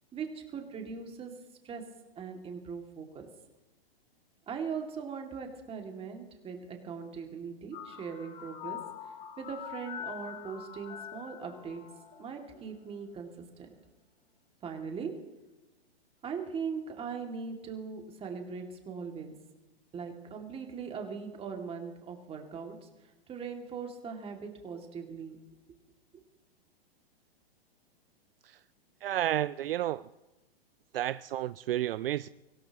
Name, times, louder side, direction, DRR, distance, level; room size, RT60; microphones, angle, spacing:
voice 1, 0.1-1.3 1.6-3.3 4.5-8.8 9.4-11.8 12.2-13.8 14.6-15.3 16.2-19.4 19.9-22.9 23.3-25.4, right 6 dB, 20° right, 3 dB, 2.4 m, -40 dB
sound 1, 7.7-12.8, left 9 dB, 30° left, 2.6 m, -44 dB
voice 2, 29.0-30.1 30.9-32.3, right 13 dB, 65° right, 16 dB, 0.5 m, -31 dB
25.0 x 16.5 x 3.0 m, 1.1 s
hypercardioid pair, 120°, 31 cm